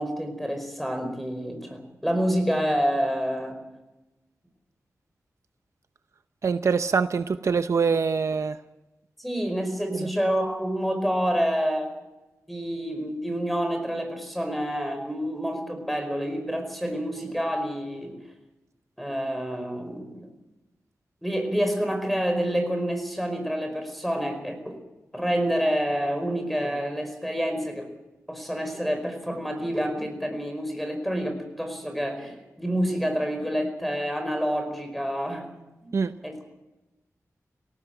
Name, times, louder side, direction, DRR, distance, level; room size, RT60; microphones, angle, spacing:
voice 1, 0.0-3.6 9.2-11.9 12.5-18.2 19.0-20.3 21.2-24.8 25.1-27.9 28.3-35.5 35.8-35.9 36.2-36.4, equal, ahead, 5 dB, 4.9 m, -28 dB
voice 2, 6.4-8.6 9.9-10.1 35.9-36.1, right 5 dB, 65° right, 10 dB, 0.7 m, -24 dB
18.5 x 18.0 x 7.9 m, 1.0 s
wide cardioid pair, 130°, 5 cm